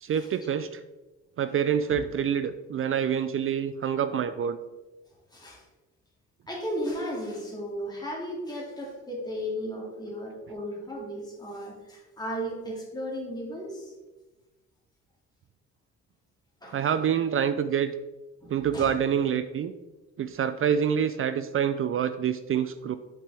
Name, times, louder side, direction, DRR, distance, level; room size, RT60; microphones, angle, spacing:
voice 1, 0.0-0.8 1.4-4.6 16.7-17.9 18.5-19.7 20.2-23.0, right 8 dB, 45° right, 11 dB, 0.4 m, -26 dB
voice 2, 5.3-5.6 6.5-13.9 16.6-16.9 18.4-19.0, equal, 15° left, -3 dB, 2.3 m, -35 dB
6.9 x 5.5 x 3.4 m, 1.1 s
cardioid pair, 90°, 30 cm